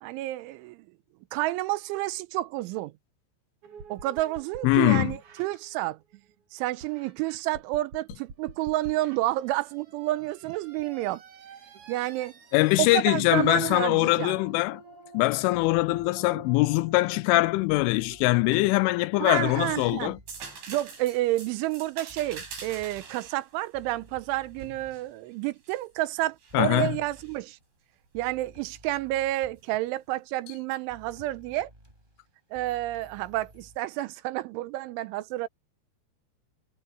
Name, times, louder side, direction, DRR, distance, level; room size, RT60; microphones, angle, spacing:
voice 1, 0.0-0.8 1.3-2.9 3.9-6.0 6.5-11.2 11.9-12.3 12.8-14.4 19.2-20.2 20.7-27.6 28.1-31.7 32.5-35.5, right 16 dB, 85° right, 3.0 m, -30 dB
sound 1, 3.6-6.3 6.8-19.1 19.5-20.6, right 4 dB, 45° right, 3.4 m, -49 dB
voice 2, 4.6-5.1 12.5-14.8 15.1-20.2 26.5-27.0, left 21 dB, 85° left, 2.8 m, -23 dB
sound 2, 15.5-16.2 17.7-18.7 19.3-20.6 22.1-23.3 23.7-25.1 26.5-27.6 28.1-29.5 30.9-33.8, right 1 dB, 10° right, 7.7 m, -54 dB
sound 3, 20.3-25.9 26.4-27.4 29.4-29.6, right 5 dB, 60° right, 9.5 m, -45 dB
omnidirectional pair, 6.0 m